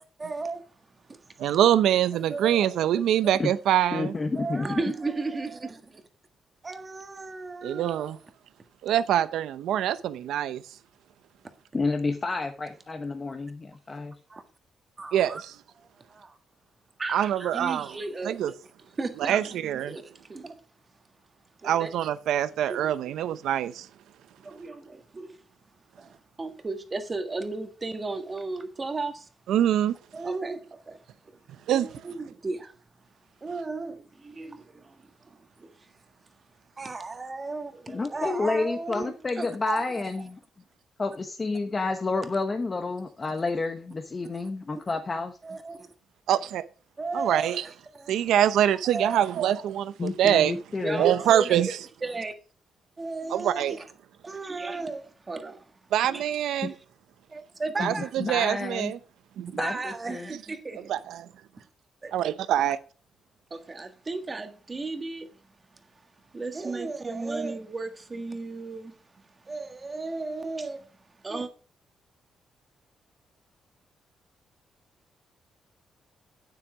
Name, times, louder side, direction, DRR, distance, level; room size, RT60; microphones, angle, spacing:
voice 1, 0.2-0.6 1.1-1.2 2.3-2.7 4.3-6.0 6.6-8.0 14.3-14.4 15.0-15.4 16.1-16.4 17.0-18.4 19.0-20.6 21.6-21.9 22.7-22.9 24.4-25.4 26.0-26.1 26.4-29.3 30.1-31.0 31.7-32.7 33.4-35.7 36.8-40.0 44.7-44.8 45.4-45.9 47.0-48.1 48.8-49.6 50.8-51.6 52.0-52.3 53.0-53.8 54.2-55.7 56.1-56.2 57.3-58.1 59.6-60.9 61.6-61.7 62.0-62.1 63.5-65.3 66.3-69.0 69.4-70.9 71.2-71.5, right 3 dB, 25° right, 1.6 m, -35 dB
voice 2, 1.4-4.1 7.6-8.2 8.8-10.6 15.1-15.5 17.1-17.9 18.2-18.5 19.2-20.0 21.6-23.9 29.5-29.9 31.7-32.0 46.3-46.6 47.1-47.6 48.1-50.6 51.0-51.8 53.3-53.8 55.9-56.7 57.8-59.0 59.4-59.5 60.9-61.3 62.1-62.8, right 11 dB, 85° right, 0.7 m, -24 dB
voice 3, 3.9-4.8 11.7-14.1 37.9-40.4 41.0-45.4 50.0-51.1 56.6-56.7 57.8-58.9 59.5-60.3, left 3 dB, 30° left, 1.0 m, -30 dB
9.1 x 7.8 x 5.0 m
cardioid pair, 110°, 0 cm